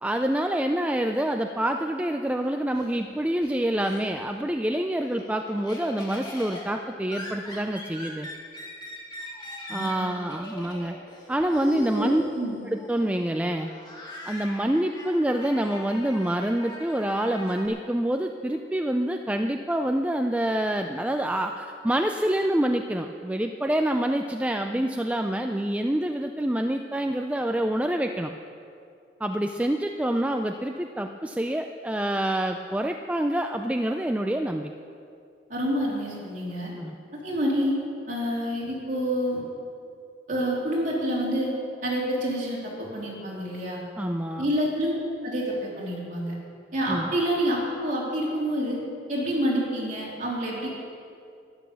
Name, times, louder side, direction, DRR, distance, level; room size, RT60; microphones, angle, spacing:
voice 1, 0.0-8.3 9.7-11.0 11.3-12.2 12.7-13.7 14.3-28.3 29.2-34.7 36.8-36.9 44.0-44.5 46.9-47.1, right 1 dB, 5° right, 5 dB, 0.4 m, -26 dB
Laughter, 2.3-4.4 4.8-17.7, left 1 dB, 25° left, 2.0 m, -41 dB
voice 2, 9.7-10.1 11.7-12.6 35.5-36.7 37.2-37.8 38.1-39.4 40.3-41.5 41.8-43.8 44.4-44.9 45.2-46.3 46.7-48.8 49.1-50.7, equal, 45° right, -4 dB, 3.6 m, -28 dB
12.5 x 11.0 x 7.0 m, 2.4 s
head